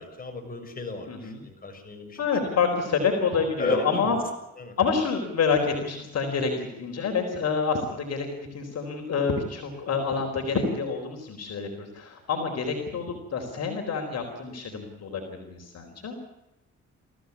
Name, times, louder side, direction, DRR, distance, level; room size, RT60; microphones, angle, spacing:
voice 1, 0.0-2.2 3.6-4.2 4.6-4.7, left 2 dB, 30° left, 3 dB, 6.3 m, -33 dB
voice 2, 1.1-1.4 2.2-4.2 4.8-16.2, left 5 dB, 55° left, 3 dB, 4.3 m, -28 dB
23.5 x 15.5 x 9.7 m, 0.93 s
cardioid pair, 90°, 30 cm